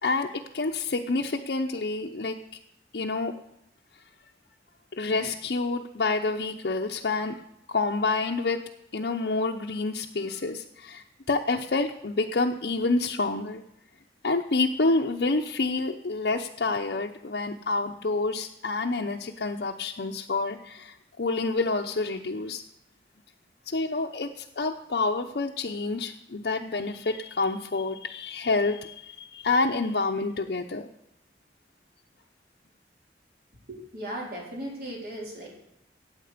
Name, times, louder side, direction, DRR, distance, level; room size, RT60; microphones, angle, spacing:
voice 1, 0.0-2.3 2.9-3.3 5.0-7.4 7.7-8.6 8.9-13.6 14.2-22.6 23.7-30.9, left 3 dB, 65° left, 1 dB, 0.7 m, -28 dB
voice 2, 33.7-35.5, right 1 dB, 55° right, -2 dB, 3.9 m, -37 dB
15.5 x 8.9 x 5.1 m, 0.81 s
head